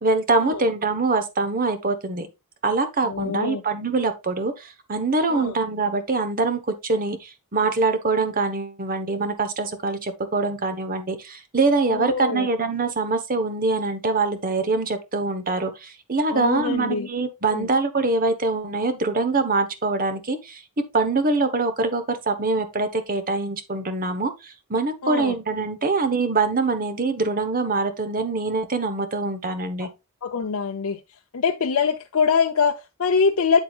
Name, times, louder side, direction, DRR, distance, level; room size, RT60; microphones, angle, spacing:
voice 1, 0.0-2.3 2.6-20.6 20.9-29.9, right 3 dB, 40° right, 1.1 m, -24 dB
voice 2, 3.0-3.6 5.3-5.5 11.9-12.5 16.3-17.1 17.4-17.7 25.0-25.3 29.8-29.9 30.2-31.0 31.3-33.6, left 5 dB, 75° left, 0.7 m, -24 dB
8.2 x 7.7 x 2.4 m
head